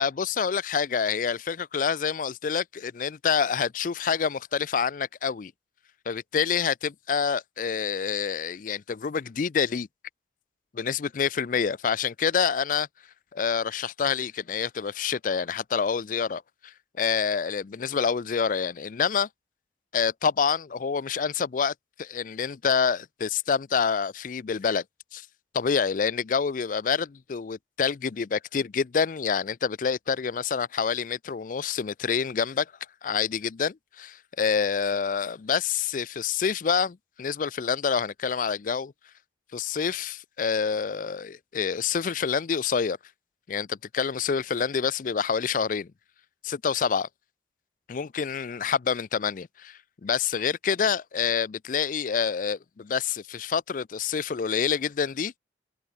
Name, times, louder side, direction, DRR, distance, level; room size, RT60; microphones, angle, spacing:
voice 1, 0.0-5.5 6.1-9.9 10.7-12.9 13.3-19.3 19.9-24.8 25.1-25.3 25.5-32.7 33.0-38.9 39.5-43.0 43.5-45.9 46.4-47.1 47.9-55.4, left 6 dB, 45° left, 0.4 m, -27 dB
head